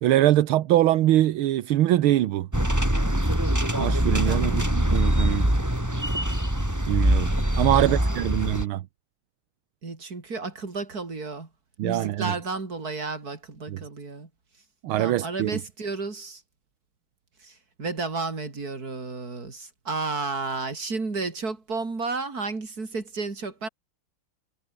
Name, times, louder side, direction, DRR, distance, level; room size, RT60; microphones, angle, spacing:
voice 1, 0.0-2.5 3.8-5.5 6.9-8.8 11.8-12.3 13.7-13.8 14.8-15.6, right 13 dB, 75° right, 1.7 m, -23 dB
sound 1, 2.5-8.6, right 1 dB, 5° right, 4.6 m, -23 dB
voice 2, 4.2-4.6 7.6-8.2 9.8-11.5 11.8-14.3 15.0-16.4 17.4-23.7, right 3 dB, 40° right, 4.2 m, -32 dB
omnidirectional pair, 2.4 m